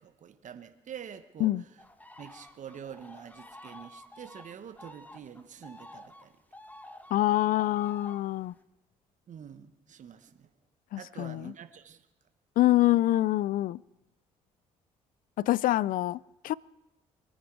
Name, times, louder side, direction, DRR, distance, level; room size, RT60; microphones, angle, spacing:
voice 1, 0.0-1.8 2.2-6.3 9.3-10.5 11.0-12.1, right 8 dB, 55° right, 1.2 m, -46 dB
sound 1, 1.8-8.5, left 1 dB, 10° left, 1.4 m, -50 dB
voice 2, 7.1-8.5 10.9-11.5 12.6-13.8 15.4-16.5, left 15 dB, 65° left, 0.4 m, -26 dB
24.5 x 9.6 x 4.7 m
supercardioid pair, 60°, 15 cm